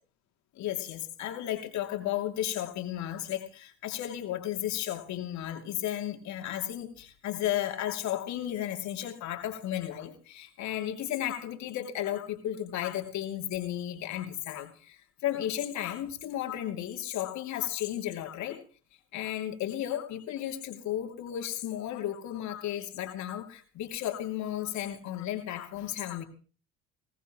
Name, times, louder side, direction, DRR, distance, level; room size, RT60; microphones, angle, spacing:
voice 1, 0.6-18.6 19.1-26.2, left 12 dB, 60° left, 2.7 m, -34 dB
20.5 x 17.5 x 3.0 m
hypercardioid pair, 75°, 33 cm